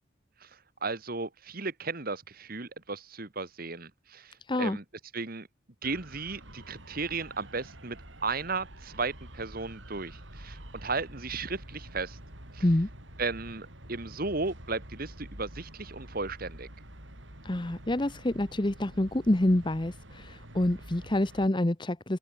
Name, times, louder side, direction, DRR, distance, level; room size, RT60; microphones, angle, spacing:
voice 1, 0.8-4.8 5.1-5.5 5.8-12.2 12.5-12.6 13.2-16.7, right 4 dB, 45° right, 1.7 m, -35 dB
sound 1, 5.8-21.5, right 1 dB, 65° right, 7.7 m, -48 dB
voice 2, 17.4-22.2, left 1 dB, 20° left, 0.8 m, -27 dB
head